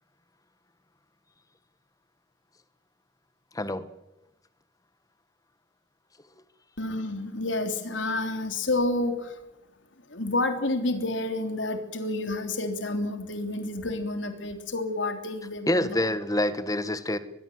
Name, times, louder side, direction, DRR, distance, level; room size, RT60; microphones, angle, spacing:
voice 1, 3.5-3.9 15.7-17.2, left 1 dB, 20° left, 13 dB, 1.4 m, -26 dB
voice 2, 6.8-9.3 10.1-15.9, left 2 dB, 80° left, 7 dB, 3.2 m, -29 dB
22.5 x 21.5 x 7.8 m, 0.94 s
head